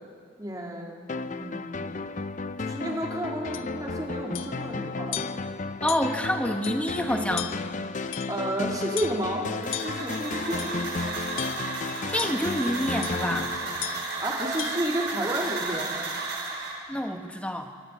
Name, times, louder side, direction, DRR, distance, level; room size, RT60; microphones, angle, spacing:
voice 1, 0.4-1.9 2.6-5.2 8.3-10.9 14.2-15.9, right 1 dB, 20° right, -2 dB, 3.2 m, -32 dB
sound 1, 1.1-14.6, left 3 dB, 40° left, 0.6 m, -34 dB
sound 2, 3.5-3.7 4.3-4.6 5.1-5.5 5.9-6.2 6.6-6.8 7.4-7.7 8.1-8.5 9.0-9.3 9.7-10.1 10.6-10.8 11.4-11.8 12.2-12.4 13.0-13.3 13.8-14.1 14.6-14.8, left 13 dB, 80° left, 0.7 m, -36 dB
voice 2, 5.8-7.5 12.1-13.5 16.9-17.7, equal, 5° left, 4 dB, 1.4 m, -28 dB
sound 3, 9.6-16.7, right 3 dB, 55° right, 6.2 m, -33 dB
26.0 x 14.5 x 8.5 m, 2.1 s
head